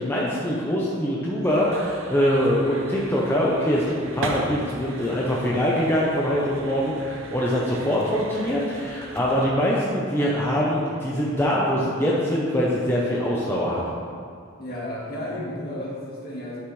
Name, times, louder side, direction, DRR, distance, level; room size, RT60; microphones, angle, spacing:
voice 1, 0.0-13.8, equal, 10° left, -6 dB, 0.8 m, -23 dB
sound 1, 1.4-9.5, right 3 dB, 85° right, 0.7 m, -38 dB
voice 2, 14.6-16.6, left 1 dB, 50° left, -5 dB, 1.8 m, -33 dB
9.3 x 6.5 x 3.2 m, 2.2 s
head